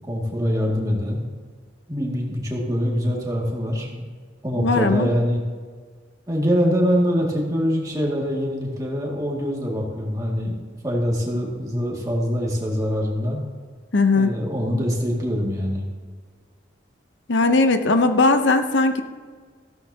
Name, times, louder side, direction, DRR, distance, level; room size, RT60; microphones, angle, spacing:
voice 1, 0.1-1.2 1.9-4.0 4.4-5.4 6.3-10.6 10.8-13.4 14.1-15.9, equal, 20° right, -3 dB, 2.2 m, -24 dB
voice 2, 4.6-5.1 13.9-14.4 17.3-19.0, left 3 dB, 80° left, 8 dB, 0.8 m, -18 dB
15.5 x 13.0 x 2.9 m, 1.6 s
head